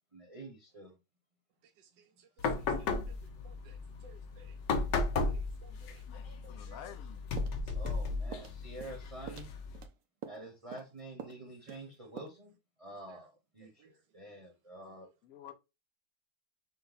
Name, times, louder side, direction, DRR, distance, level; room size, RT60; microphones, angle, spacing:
voice 1, 0.1-1.0 7.7-9.5 10.3-12.5 12.8-15.1, right 1 dB, 25° right, 0.9 m, -48 dB
voice 2, 1.8-2.4 2.8-3.2 3.4-3.8 4.0-6.9 7.9-8.0 10.4-10.5 11.6-11.8 13.1-13.3 13.8-13.9, right 4 dB, 85° right, 1.2 m, -60 dB
sound 1, 2.4-9.9, left 3 dB, 80° left, 1.4 m, -35 dB
voice 3, 6.5-7.3 8.3-8.4 15.2-15.5, left 10 dB, 65° left, 1.0 m, -49 dB
sound 2, 7.4-8.0 8.3-8.5 8.8-9.0 9.3-9.9 10.2-10.5 10.7-10.9 11.2-11.4 11.7-11.9 12.2-12.3, right 8 dB, 70° right, 0.9 m, -46 dB
5.3 x 2.1 x 4.0 m
omnidirectional pair, 1.9 m